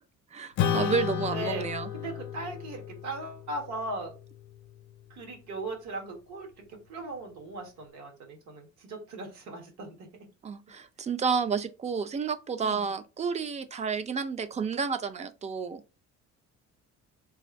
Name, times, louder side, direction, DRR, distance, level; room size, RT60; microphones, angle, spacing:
voice 1, 0.3-1.9 10.4-15.8, right 5 dB, 25° right, 0.3 m, -30 dB
Acoustic guitar / Strum, 0.6-5.4, left 10 dB, 70° left, 0.6 m, -34 dB
voice 2, 1.3-1.7 1.9-4.1 5.1-10.1 12.6-12.9, right 2 dB, 75° right, 1.5 m, -38 dB
3.4 x 2.5 x 4.4 m
cardioid pair, 150°, 30 cm